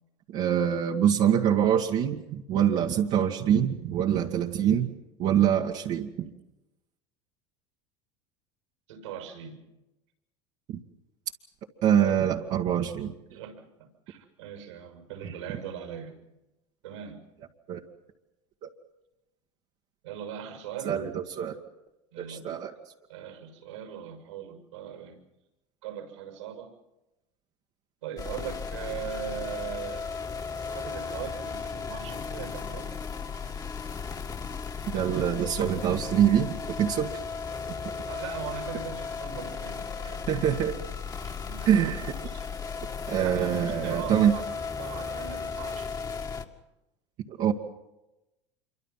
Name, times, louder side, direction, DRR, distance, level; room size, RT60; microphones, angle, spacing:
voice 1, 0.3-4.9 5.2-6.3 11.8-13.1 17.7-17.8 18.6-18.7 20.8-21.6 22.2-22.7 34.9-37.2 40.3-40.8 41.7-42.1 43.1-44.4 47.3-47.5, right 9 dB, 55° right, -1 dB, 1.9 m, -25 dB
voice 2, 8.9-9.6 11.9-12.2 13.3-16.1 16.8-17.2 20.0-20.9 22.1-22.6 23.1-25.2 25.8-26.7 28.0-30.1 30.7-32.9 38.0-40.3 41.2-41.9 43.1-44.5 44.8-45.9, right 9 dB, 85° right, 5 dB, 6.7 m, -40 dB
sound 1, 28.2-46.4, left 5 dB, 25° left, 2.0 m, -35 dB
27.0 x 24.5 x 5.8 m, 0.96 s
hypercardioid pair, 90°, 15 cm